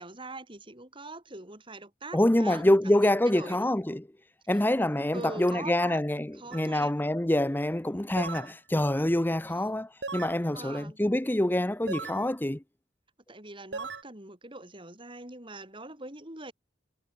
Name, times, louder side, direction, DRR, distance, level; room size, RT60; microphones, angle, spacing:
voice 1, 0.0-3.7 4.5-4.6 5.1-6.0 6.3-6.9 9.4-9.5 10.5-11.0 13.3-16.5, right 2 dB, 30° right, 7.3 m, -43 dB
voice 2, 2.1-4.0 4.5-12.6, left 1 dB, 10° left, 0.7 m, -26 dB
sound 1, 6.5-6.7 8.2-8.5 10.0-10.4 11.9-12.2 13.7-14.0, right 4 dB, 80° right, 1.7 m, -37 dB
head